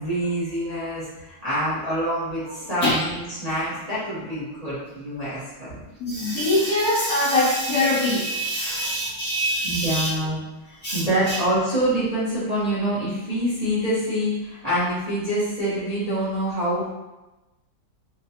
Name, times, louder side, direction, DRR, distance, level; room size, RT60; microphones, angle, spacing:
voice 1, 0.0-5.4 5.7-5.8 8.6-9.2 9.6-16.9, right 1 dB, 25° right, -11 dB, 1.0 m, -26 dB
voice 2, 6.0-10.1 10.8-11.0 11.3-11.4, left 1 dB, 60° left, -7 dB, 1.0 m, -23 dB
3.9 x 2.4 x 2.8 m, 1.0 s
omnidirectional pair, 1.9 m